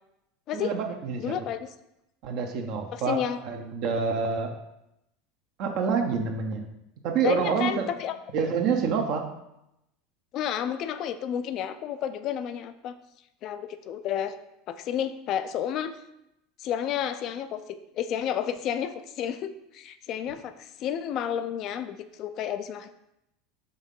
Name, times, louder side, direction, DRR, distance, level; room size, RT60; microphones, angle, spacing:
voice 1, 0.5-1.3 2.2-4.5 5.6-6.6 7.0-7.9 8.3-9.3, right 5 dB, 55° right, 3 dB, 0.8 m, -27 dB
voice 2, 1.2-1.7 2.9-3.4 7.2-8.1 10.3-12.9 13.4-14.3 14.7-15.9 16.6-22.9, left 9 dB, 50° left, 11 dB, 0.5 m, -31 dB
5.5 x 3.5 x 5.3 m, 0.85 s
figure-of-eight pair, 80°, 0 cm